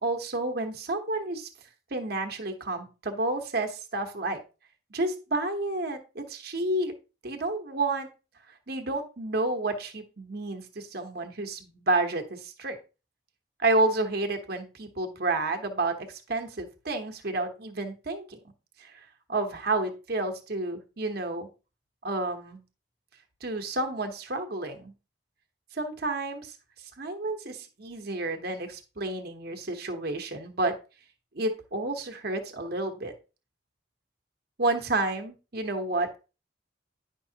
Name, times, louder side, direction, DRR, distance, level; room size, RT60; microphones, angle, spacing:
voice 1, 0.0-1.5 1.9-4.4 4.9-6.9 7.2-8.1 8.7-12.8 13.6-18.4 18.8-19.0 19.3-21.5 22.0-22.6 23.4-24.9 25.7-26.5 27.0-30.8 31.3-33.1 34.6-36.2, right 2 dB, 55° right, 5 dB, 1.1 m, -30 dB
9.9 x 5.4 x 2.8 m, 0.31 s
head